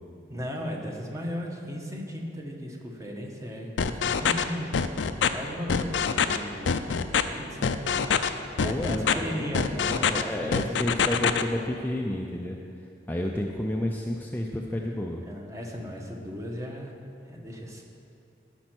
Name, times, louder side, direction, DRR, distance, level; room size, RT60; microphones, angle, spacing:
voice 1, 0.3-4.9 5.3-7.9 8.6-10.9 15.3-16.9 17.3-17.8, equal, 15° right, 0 dB, 1.1 m, -36 dB
sound 1, 3.8-4.4 4.7-5.3 5.7-6.4 6.7-7.2 7.6-8.3 8.6-9.1 9.5-10.2 10.5-11.4, left 6 dB, 85° left, 0.5 m, -24 dB
voice 2, 8.6-9.5 9.9-15.2, left 1 dB, 10° left, 0 dB, 0.4 m, -31 dB
13.5 x 5.3 x 6.1 m, 2.5 s
head